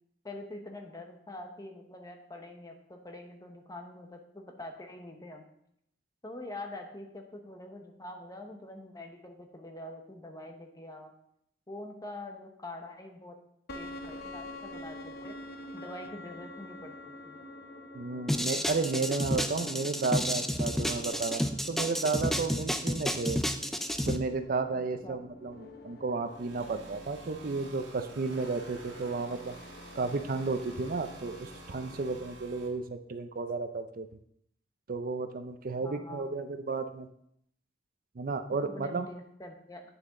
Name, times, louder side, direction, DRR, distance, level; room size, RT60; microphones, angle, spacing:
voice 1, 0.2-5.5 6.2-11.1 11.7-13.4 13.7-15.4 15.7-17.4 24.7-25.2 35.8-36.4 38.6-39.8, left 1 dB, 20° left, 3 dB, 1.0 m, -45 dB
sound 1, 13.7-32.0, left 1 dB, 60° left, 0.8 m, -48 dB
voice 2, 17.9-23.4 24.1-29.6 29.9-34.1 34.9-37.1 38.2-39.1, right 4 dB, 50° right, 8 dB, 0.5 m, -33 dB
sound 2, 18.3-24.2, equal, ahead, 0.5 m, -30 dB
sound 3, 26.2-32.7, right 2 dB, 85° right, 1.8 m, -50 dB
8.9 x 6.9 x 3.7 m, 0.72 s
head